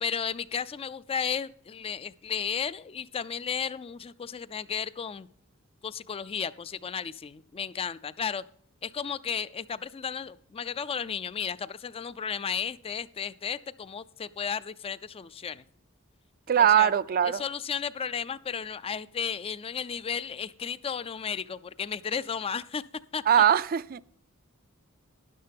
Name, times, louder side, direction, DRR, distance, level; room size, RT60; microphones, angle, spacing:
voice 1, 0.0-5.3 5.8-8.4 8.8-15.7 16.6-16.9 17.2-22.8 23.1-23.2, left 7 dB, 25° left, 0.4 m, -34 dB
voice 2, 16.5-17.4 23.3-24.0, right 9 dB, 45° right, 0.4 m, -21 dB
12.0 x 10.5 x 3.4 m
head